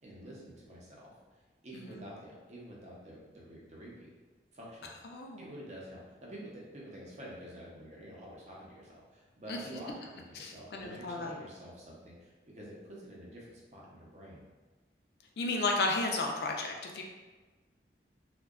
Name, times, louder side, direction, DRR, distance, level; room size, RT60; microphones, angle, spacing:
voice 1, 0.0-4.1 4.5-14.4, equal, 40° right, -5 dB, 0.6 m, -48 dB
voice 2, 5.1-5.5 9.5-9.6 10.4-11.3 15.4-17.0, left 2 dB, 65° left, 1 dB, 0.3 m, -33 dB
2.6 x 2.1 x 2.3 m, 1.3 s
head